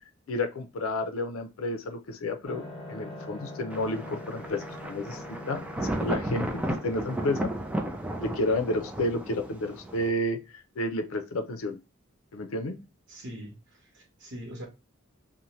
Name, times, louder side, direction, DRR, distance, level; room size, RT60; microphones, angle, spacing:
voice 1, 0.3-7.5 8.2-11.8 12.3-12.8, left 1 dB, 80° left, 0.5 m, -31 dB
sound 1, 2.4-8.7, left 1 dB, 25° left, 0.8 m, -44 dB
Thunder, 3.7-10.1, right 1 dB, 5° right, 0.3 m, -34 dB
voice 2, 13.1-14.7, equal, 60° right, 1.0 m, -42 dB
2.7 x 2.1 x 3.0 m
head